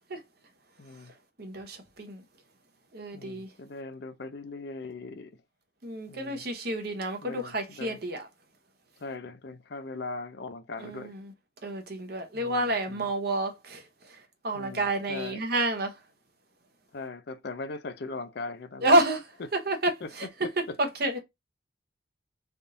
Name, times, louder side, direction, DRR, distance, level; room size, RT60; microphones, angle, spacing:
voice 1, 0.8-1.1 3.1-5.4 6.1-6.4 7.2-8.0 9.0-11.1 12.3-13.1 14.5-15.4 16.9-18.9 20.0-20.1 20.4-20.8, left 3 dB, 60° left, 0.5 m, -40 dB
voice 2, 1.4-2.2 2.9-3.5 5.8-8.3 10.8-11.3 11.6-14.2 14.4-16.0 18.8-19.2 19.5-19.9 20.2-20.3 20.8-21.2, right 1 dB, 55° right, 0.9 m, -29 dB
3.5 x 2.6 x 2.6 m
head